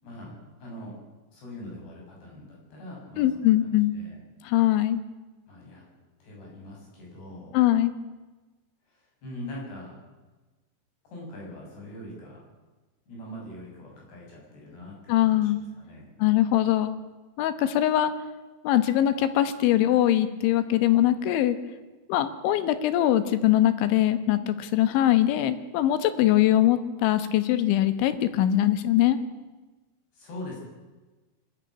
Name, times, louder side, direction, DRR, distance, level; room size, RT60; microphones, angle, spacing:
voice 1, 0.0-1.0 1.3-4.2 5.5-7.6 8.9-10.0 11.0-12.4 13.1-16.0 30.1-30.6, left 1 dB, 60° left, -2 dB, 8.9 m, -42 dB
voice 2, 3.2-3.9 4.4-5.0 7.5-7.9 15.1-15.6 16.2-17.0 17.4-18.1 18.6-21.6 22.1-29.2, left 13 dB, 80° left, 12 dB, 3.5 m, -22 dB
23.0 x 14.0 x 9.8 m, 1.2 s
omnidirectional pair, 5.4 m